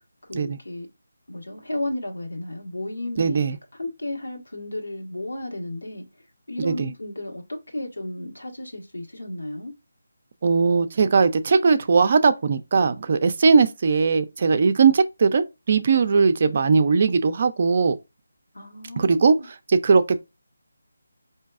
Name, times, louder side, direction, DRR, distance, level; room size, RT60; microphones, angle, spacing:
voice 1, 0.3-0.9 1.3-3.4 3.7-9.7 18.5-19.5, left 1 dB, 90° left, 1.4 m, -33 dB
voice 2, 3.2-3.6 6.6-6.9 10.4-18.0 19.0-19.4 19.7-20.2, right 5 dB, 45° right, 0.4 m, -19 dB
4.5 x 2.7 x 2.4 m
figure-of-eight pair, 160°, 0 cm